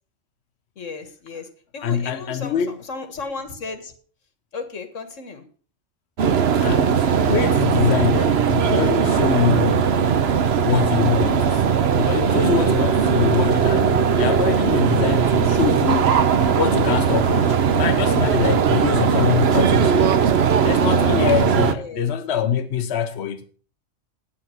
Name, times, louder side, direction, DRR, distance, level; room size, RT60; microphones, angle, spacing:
voice 1, 0.8-1.5 1.7-2.6 2.9-3.9 4.5-5.4 13.1-13.5 21.7-22.0, left 4 dB, 80° left, 1.9 m, -34 dB
voice 2, 1.8-2.8 6.6-10.0 10.6-16.2 16.5-20.0 20.6-23.4, left 8 dB, 60° left, 1.0 m, -24 dB
sound 1, 6.2-21.7, right 7 dB, 60° right, 1.0 m, -19 dB
9.3 x 8.8 x 5.8 m
omnidirectional pair, 1.3 m